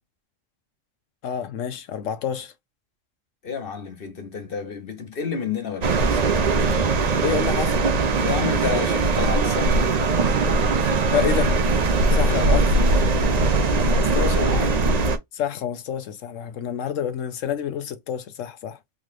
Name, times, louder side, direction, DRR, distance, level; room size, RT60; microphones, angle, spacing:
voice 1, 1.2-2.5 7.1-7.8 11.1-11.5 12.1-12.9 15.3-18.8, left 8 dB, 80° left, 1.1 m, -28 dB
voice 2, 3.4-6.2 8.2-10.0 13.9-14.8, left 5 dB, 50° left, 1.0 m, -30 dB
sound 1, 5.8-15.2, right 3 dB, 45° right, 0.5 m, -20 dB
3.8 x 3.0 x 2.5 m
omnidirectional pair, 1.3 m